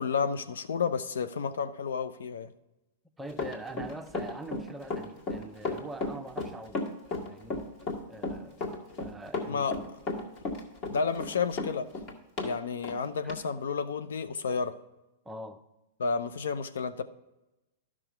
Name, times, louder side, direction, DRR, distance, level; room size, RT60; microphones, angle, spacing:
voice 1, 0.0-2.5 9.5-9.8 10.9-11.9 12.4-14.7 16.0-17.0, left 5 dB, 70° left, 11 dB, 0.6 m, -31 dB
voice 2, 3.2-6.8 7.3-7.6 8.1-8.6 9.0-9.7 13.2-13.4 15.2-15.6, right 1 dB, 10° right, 7 dB, 0.7 m, -43 dB
Run, 3.3-12.5 12.8-13.0 13.3-13.4, left 3 dB, 40° left, 1.8 m, -34 dB
12.5 x 6.2 x 4.5 m, 1.0 s
hypercardioid pair, 105°, 0 cm